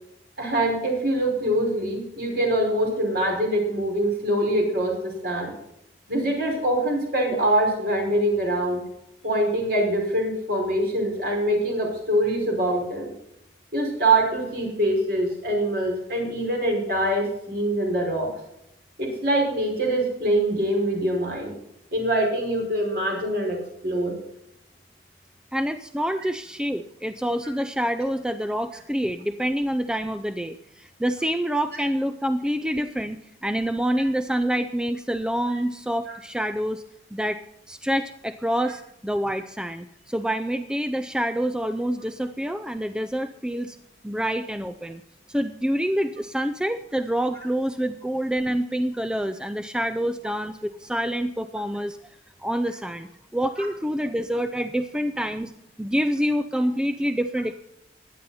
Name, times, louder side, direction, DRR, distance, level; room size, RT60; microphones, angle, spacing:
voice 1, 0.4-5.5 6.1-8.8 9.2-13.1 13.7-18.3 19.0-21.5 21.9-23.6 23.8-24.1 35.5-35.6 53.6-53.7, right 1 dB, 55° right, 0 dB, 5.3 m, -24 dB
voice 2, 25.5-33.2 33.4-36.8 37.1-37.4 37.7-43.8 44.0-45.0 45.3-52.0 52.4-55.5 55.8-57.5, equal, 5° right, 9 dB, 0.4 m, -27 dB
16.5 x 11.0 x 4.2 m, 0.81 s
head